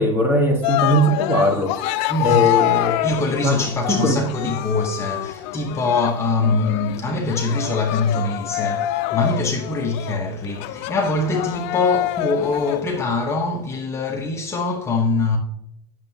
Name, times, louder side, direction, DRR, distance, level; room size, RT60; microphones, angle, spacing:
voice 1, 0.0-1.8 2.2-3.0 3.4-3.6 3.9-4.2, equal, 15° right, 1.4 m, -19 dB
Cheering, 0.6-13.0, left 15 dB, 50° left, 0.5 m, -26 dB
voice 2, 2.1-2.5 3.0-15.4, left 3 dB, 20° left, 0.9 m, -23 dB
9.0 x 6.7 x 2.7 m
supercardioid pair, 130°, 15 cm